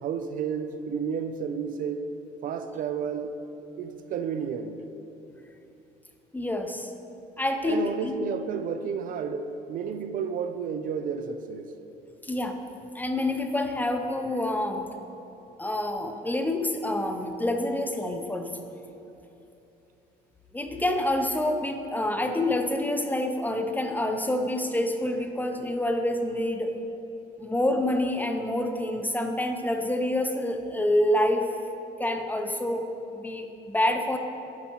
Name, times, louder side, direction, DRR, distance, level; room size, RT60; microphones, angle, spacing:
voice 1, 0.0-2.0 2.4-3.3 3.8-4.9 7.7-11.7, right 6 dB, 55° right, 9 dB, 0.4 m, -31 dB
voice 2, 6.3-6.9 7.4-8.1 12.2-12.6 12.9-14.8 15.6-18.7 20.5-26.7 27.4-31.5 32.0-32.9 33.1-34.2, left 1 dB, 10° left, 5 dB, 0.4 m, -27 dB
9.6 x 5.5 x 2.9 m, 2.9 s
cardioid pair, 110°, 17 cm